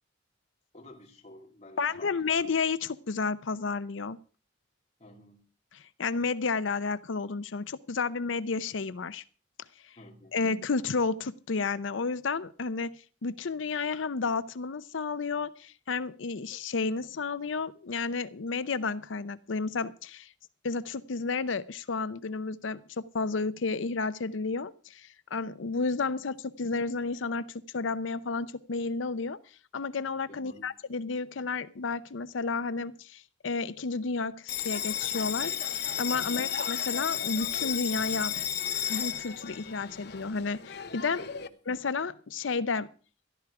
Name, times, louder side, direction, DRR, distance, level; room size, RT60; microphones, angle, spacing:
voice 1, 0.7-2.3 5.0-5.4 10.0-10.5 30.3-30.7 41.2-41.5, left 1 dB, 35° left, 2 dB, 2.5 m, -51 dB
voice 2, 1.8-4.2 5.7-9.2 10.3-20.3 20.6-29.4 29.7-35.6 36.0-38.3 38.9-41.2 41.7-42.9, left 4 dB, 80° left, 14 dB, 0.6 m, -31 dB
Bell, 34.5-41.5, left 9 dB, 60° left, 1.0 m, -33 dB
14.0 x 12.5 x 4.8 m, 0.38 s
head